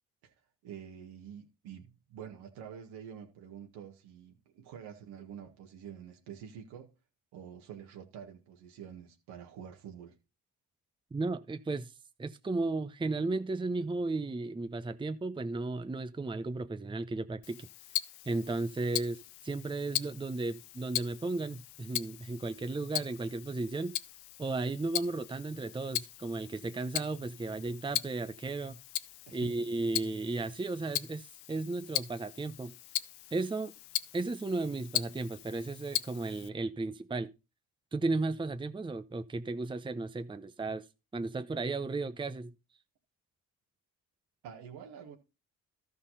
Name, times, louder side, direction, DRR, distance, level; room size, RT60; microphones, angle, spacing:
voice 1, 0.6-6.9 7.3-10.2 29.3-29.5 44.4-45.2, right 8 dB, 85° right, 1.8 m, -47 dB
voice 2, 11.1-11.9 12.2-17.7 18.3-23.9 24.4-28.8 29.3-32.7 33.3-33.7 34.1-37.3 37.9-40.8 41.1-42.5, right 3 dB, 10° right, 0.7 m, -34 dB
Tick-tock, 17.4-36.5, left 16 dB, 85° left, 0.6 m, -39 dB
13.0 x 5.7 x 4.1 m
supercardioid pair, 70°, 39 cm